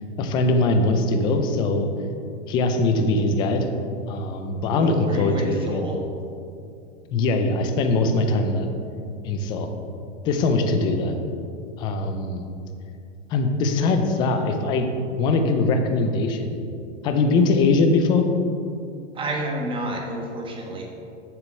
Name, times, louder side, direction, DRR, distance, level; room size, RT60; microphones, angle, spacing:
voice 1, 0.2-1.9 2.5-3.6 4.1-5.9 7.1-8.7 9.2-9.7 10.2-11.2 11.8-12.4 13.3-14.9 15.2-16.6 17.0-18.2, left 3 dB, 15° left, 6 dB, 0.3 m, -21 dB
voice 2, 4.7-6.0 19.1-20.8, right 1 dB, 15° right, 0 dB, 1.3 m, -30 dB
7.5 x 6.7 x 6.3 m, 2.5 s
hypercardioid pair, 145°, 37 cm